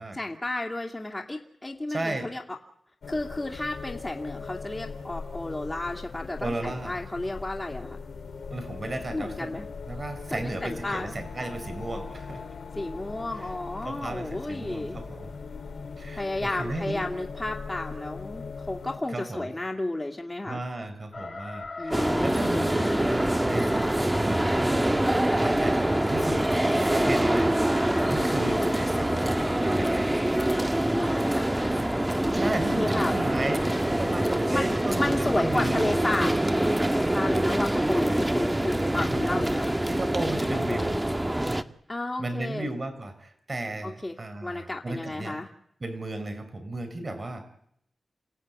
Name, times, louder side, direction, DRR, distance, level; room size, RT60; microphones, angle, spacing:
voice 1, 0.1-2.4 3.1-8.0 9.1-9.7 10.3-11.1 12.8-15.0 16.1-20.6 21.8-22.7 28.2-28.7 30.9-31.9 32.7-33.1 34.5-34.7 35.0-36.3 37.1-39.8 40.7-40.9 41.9-42.7 43.8-44.2 44.4-45.5, left 2 dB, 25° left, 1 dB, 2.7 m, -32 dB
voice 2, 1.9-2.3 6.4-7.0 8.5-9.5 9.9-12.5 13.4-13.5 13.8-15.3 16.0-17.1 19.1-19.5 20.4-30.1 32.3-33.7 34.0-36.0 39.0-39.5 39.8-41.0 41.4-41.6 42.2-45.4 45.8-47.4, right 2 dB, 40° right, 10 dB, 6.2 m, -34 dB
sound 1, 3.0-19.0, left 5 dB, 85° left, 3.6 m, -40 dB
sound 2, 21.1-37.1, left 3 dB, 45° left, 2.5 m, -42 dB
sound 3, 21.9-41.6, right 1 dB, 15° right, 1.6 m, -25 dB
28.5 x 16.5 x 9.7 m, 0.74 s
cardioid pair, 55°, 0 cm